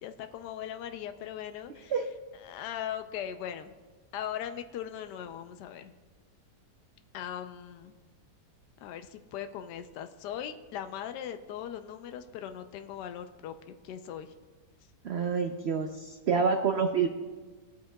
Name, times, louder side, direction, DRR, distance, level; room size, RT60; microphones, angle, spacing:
voice 1, 0.0-1.9 2.4-3.7 4.1-5.9 7.1-8.0 8.8-13.5 13.8-14.3, left 10 dB, 80° left, 8 dB, 1.2 m, -39 dB
voice 2, 15.0-17.1, right 5 dB, 80° right, 5 dB, 0.5 m, -27 dB
18.5 x 8.5 x 2.2 m, 1.4 s
omnidirectional pair, 1.8 m